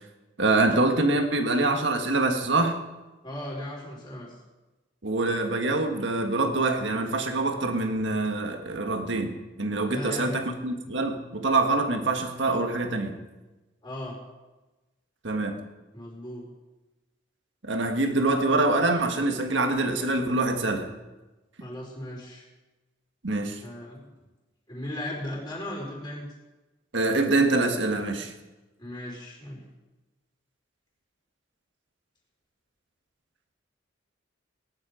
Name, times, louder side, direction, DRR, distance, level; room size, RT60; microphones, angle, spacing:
voice 1, 0.4-2.8 5.0-13.2 15.2-15.6 17.6-20.9 23.2-23.6 26.9-28.3, right 2 dB, 70° right, 5 dB, 1.7 m, -25 dB
voice 2, 3.2-4.4 9.8-10.4 13.8-14.2 15.9-16.5 21.6-22.4 23.6-24.1 24.7-26.3 28.8-29.6, left 1 dB, 20° left, -3 dB, 4.6 m, -37 dB
19.5 x 10.5 x 5.1 m, 1.1 s
head